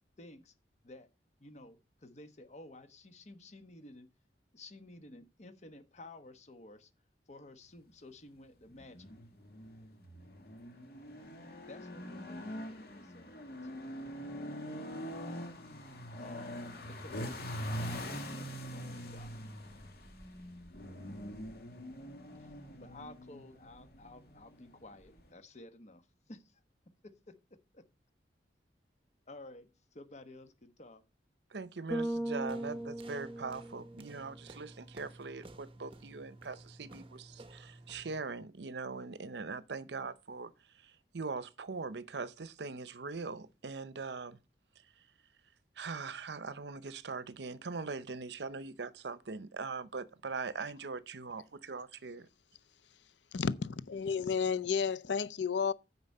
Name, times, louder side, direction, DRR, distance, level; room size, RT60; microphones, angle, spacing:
voice 1, 0.2-0.5 0.8-1.1 1.4-4.1 4.5-6.9 7.3-9.1 11.7-13.8 16.2-19.4 22.4-26.6 27.0-27.4 27.7-27.8 29.3-31.0, left 2 dB, 40° left, 1.1 m, -53 dB
sound 1, 8.7-25.3, equal, 60° left, 2.1 m, -44 dB
voice 2, 31.5-40.5 41.1-44.4 45.8-52.3, right 4 dB, 70° right, 0.7 m, -41 dB
Bass guitar, 31.9-34.2, right 1 dB, 5° left, 0.9 m, -38 dB
sound 2, 32.5-38.3, right 2 dB, 30° right, 1.1 m, -54 dB
voice 3, 53.3-55.7, left 6 dB, 90° left, 0.6 m, -32 dB
9.4 x 5.8 x 5.5 m
head